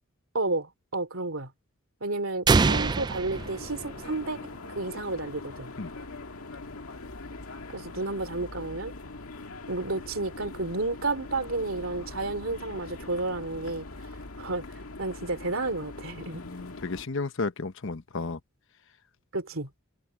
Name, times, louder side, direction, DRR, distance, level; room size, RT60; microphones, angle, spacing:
voice 1, 0.3-1.5 2.0-4.4 4.7-5.7 7.7-8.9 9.7-13.9 14.4-14.6 15.0-16.4 19.3-19.7, right 2 dB, 65° right, 3.3 m, -31 dB
sound 1, 2.5-4.4, right 4 dB, 20° right, 0.3 m, -25 dB
sound 2, 3.3-17.1, left 2 dB, 80° left, 2.1 m, -42 dB
voice 2, 16.3-18.4, left 3 dB, 65° left, 1.0 m, -33 dB
open air
head